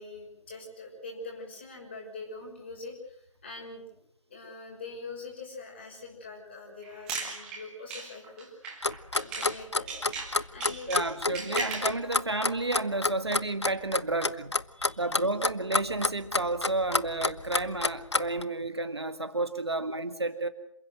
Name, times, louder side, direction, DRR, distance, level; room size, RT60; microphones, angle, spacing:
voice 1, 0.0-3.9 4.3-8.5 8.8-9.9 10.5-11.0 14.7-15.3, left 3 dB, 20° left, 0 dB, 6.1 m, -44 dB
sound 1, 6.8-9.6 9.9-12.0, right 4 dB, 5° right, 1.8 m, -38 dB
Clock, 8.8-18.4, left 3 dB, 60° left, 0.9 m, -28 dB
voice 2, 10.9-14.5 15.0-20.5, right 2 dB, 55° right, 9 dB, 1.9 m, -31 dB
27.5 x 16.0 x 7.9 m, 0.71 s
figure-of-eight pair, 165°, 17 cm